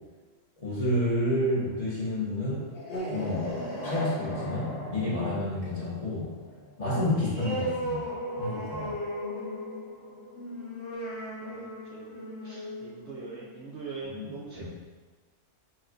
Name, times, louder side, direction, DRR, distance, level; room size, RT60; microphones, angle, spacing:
voice 1, 0.6-2.7 3.1-3.5 3.8-6.3 6.8-9.0 14.1-14.3 14.5-14.7, left 1 dB, 25° left, -9 dB, 1.2 m, -30 dB
sound 1, 2.6-13.8, equal, 45° left, 1.0 m, -36 dB
voice 2, 11.4-12.1 12.4-14.7, right 4 dB, 60° right, -4 dB, 0.7 m, -42 dB
5.6 x 3.0 x 2.5 m, 1.3 s
omnidirectional pair, 1.5 m